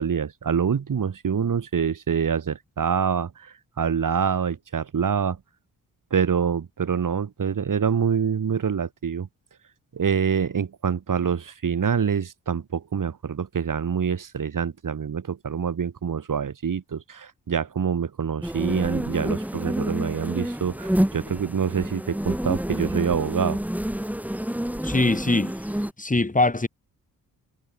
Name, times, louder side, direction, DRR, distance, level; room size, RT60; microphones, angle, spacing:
voice 1, 0.0-5.4 6.1-9.3 9.9-23.6, right 7 dB, 60° right, 5.5 m, -26 dB
sound 1, 18.4-25.9, equal, 5° right, 4.0 m, -28 dB
voice 2, 24.8-25.5 26.0-26.7, left 2 dB, 20° left, 5.6 m, -22 dB
cardioid pair, 65°, 37 cm